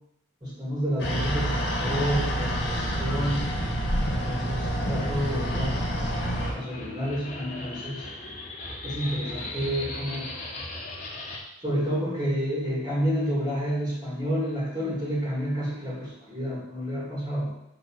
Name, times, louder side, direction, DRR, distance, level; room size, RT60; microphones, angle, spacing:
voice 1, 0.4-3.5 4.1-5.8 6.5-8.1 8.8-10.3 11.6-17.5, equal, 20° right, -6 dB, 2.2 m, -29 dB
sound 1, 1.0-6.5, equal, 55° left, 1.7 m, -28 dB
sound 2, 2.4-11.4, left 2 dB, 35° left, 1.5 m, -39 dB
6.1 x 5.0 x 6.4 m, 0.82 s
head